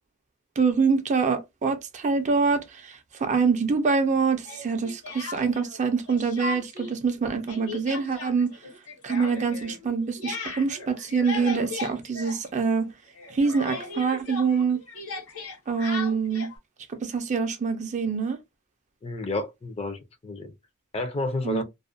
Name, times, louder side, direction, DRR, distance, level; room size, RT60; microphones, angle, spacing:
voice 1, 0.6-8.5 9.0-12.9 13.3-14.8 15.7-16.5 16.9-18.4 21.4-21.6, right 5 dB, 35° right, 0.4 m, -25 dB
Speech, 4.4-5.8 6.1-6.9 7.2-12.9 13.2-16.6, left 4 dB, 75° left, 1.0 m, -37 dB
voice 2, 19.0-20.5 20.9-21.6, left 2 dB, 30° left, 0.4 m, -30 dB
2.3 x 2.1 x 2.5 m
head